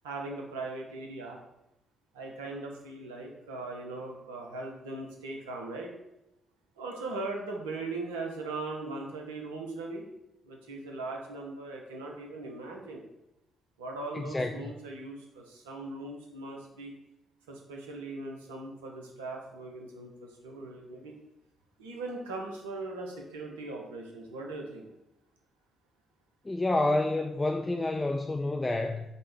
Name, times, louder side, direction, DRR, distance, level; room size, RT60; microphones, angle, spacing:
voice 1, 0.0-1.4 2.1-5.9 6.8-10.0 10.4-13.0 13.8-16.9 17.5-21.1 21.8-24.9, right 2 dB, 80° right, 1 dB, 0.6 m, -39 dB
voice 2, 14.1-14.7 26.4-29.0, left 2 dB, 20° left, 3 dB, 0.3 m, -29 dB
5.2 x 2.1 x 3.3 m, 0.87 s
figure-of-eight pair, 40°, 0 cm